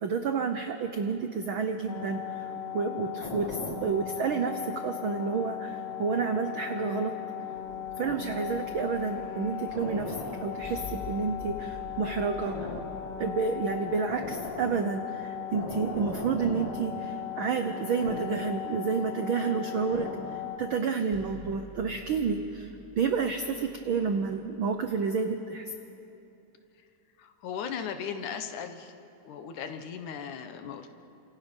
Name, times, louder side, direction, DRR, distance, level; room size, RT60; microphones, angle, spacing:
voice 1, 0.0-2.2 2.7-7.1 8.0-10.1 10.4-12.6 13.2-20.1 20.6-22.7 22.9-25.7, right 5 dB, 75° right, 6 dB, 1.1 m, -30 dB
sound 1, 1.9-20.6, left 7 dB, 55° left, 2.8 m, -37 dB
sound 2, 7.5-14.9 21.1-25.2, left 1 dB, 5° left, 4.6 m, -48 dB
voice 2, 27.2-28.9 29.2-30.9, left 7 dB, 75° left, 7 dB, 2.6 m, -37 dB
29.0 x 26.5 x 5.4 m, 2.8 s
omnidirectional pair, 3.5 m